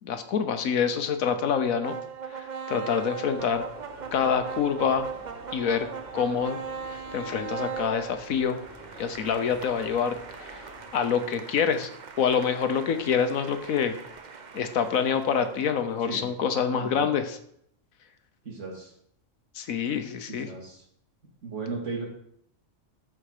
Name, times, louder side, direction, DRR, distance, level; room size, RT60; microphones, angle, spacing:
voice 1, 0.0-2.0 2.3-3.7 4.1-5.1 5.5-5.9 6.1-6.6 7.1-8.6 9.0-10.1 10.4-10.6 10.9-11.9 12.2-14.0 14.5-17.4 19.5-20.5, left 7 dB, 80° left, 8 dB, 1.3 m, -26 dB
sound 1, 1.8-16.0, right 6 dB, 40° right, 0.7 m, -40 dB
sound 2, 3.3-10.9, right 1 dB, 15° right, 4.5 m, -47 dB
voice 2, 18.4-18.9 20.3-20.8 21.4-22.1, right 4 dB, 60° right, -2 dB, 2.9 m, -36 dB
13.5 x 4.9 x 4.9 m, 0.70 s
omnidirectional pair, 1.4 m